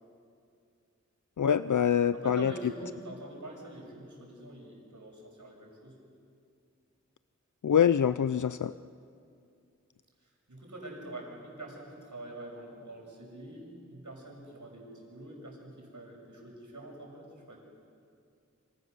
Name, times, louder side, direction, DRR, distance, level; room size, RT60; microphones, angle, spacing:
voice 1, 1.4-2.5 7.6-8.7, left 8 dB, 85° left, 14 dB, 0.5 m, -25 dB
voice 2, 2.1-5.9 10.5-17.6, right 1 dB, 80° right, 0 dB, 6.7 m, -45 dB
28.0 x 27.0 x 6.8 m, 2.4 s
wide cardioid pair, 40°, 30 cm